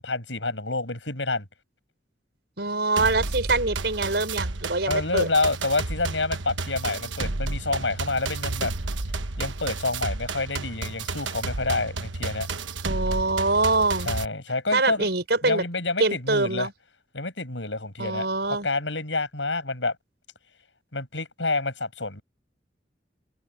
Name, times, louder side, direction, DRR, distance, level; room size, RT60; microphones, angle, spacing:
voice 1, 0.0-1.5 4.9-8.7 9.4-12.5 14.0-15.1 15.4-16.7 17.1-20.0 20.9-22.2, left 3 dB, 80° left, 7.5 m, -28 dB
voice 2, 2.6-5.3 12.8-14.1 14.7-15.6 16.0-16.7 18.0-18.7, right 3 dB, 65° right, 5.9 m, -24 dB
sound 1, 3.0-14.2, right 3 dB, 90° right, 1.2 m, -31 dB
head